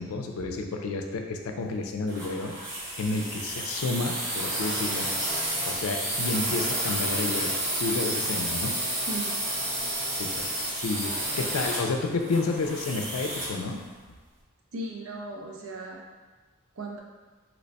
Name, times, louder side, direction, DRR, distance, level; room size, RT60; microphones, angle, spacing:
voice 1, 0.0-2.5 3.0-5.1 5.7-8.7 10.1-13.8, left 3 dB, 85° left, 4 dB, 0.4 m, -31 dB
sound 1, 2.1-13.6, right 1 dB, 60° right, 1.0 m, -30 dB
voice 2, 9.1-9.6 14.7-16.0 16.8-17.0, right 2 dB, 85° right, 0 dB, 0.6 m, -37 dB
2.9 x 2.1 x 4.0 m, 1.3 s
head